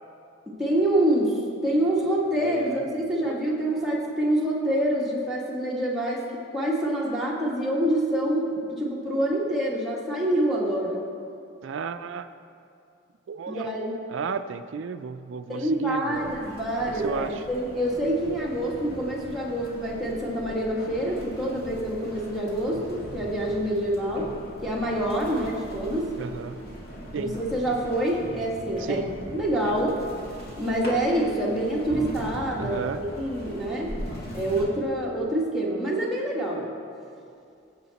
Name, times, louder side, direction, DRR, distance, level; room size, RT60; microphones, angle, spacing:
voice 1, 0.5-6.2 6.5-11.1 13.5-14.0 15.5-24.3 24.6-26.1 27.1-30.0 30.6-33.9 34.3-36.7, right 1 dB, ahead, -5 dB, 1.5 m, -26 dB
voice 2, 2.4-2.8 3.2-3.4 11.6-12.3 13.3-13.7 14.1-16.3 16.9-17.4 26.2-26.6 27.1-27.4 28.8-29.1 29.6-29.8 32.6-33.0, right 6 dB, 70° right, 10 dB, 0.3 m, -33 dB
sound 1, 16.1-34.7, equal, 50° left, 2.1 m, -40 dB
16.0 x 7.2 x 4.1 m, 2.5 s
head